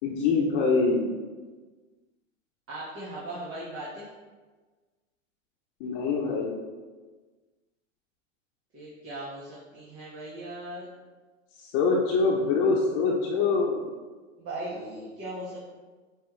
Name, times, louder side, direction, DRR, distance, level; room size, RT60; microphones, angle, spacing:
voice 1, 0.0-1.2 5.8-6.6 11.6-13.9, left 4 dB, 50° left, -4 dB, 1.0 m, -24 dB
voice 2, 2.7-4.1 8.7-10.9 14.4-15.6, right 1 dB, 35° right, -8 dB, 1.9 m, -38 dB
8.6 x 3.4 x 3.3 m, 1.4 s
hypercardioid pair, 95°, 39 cm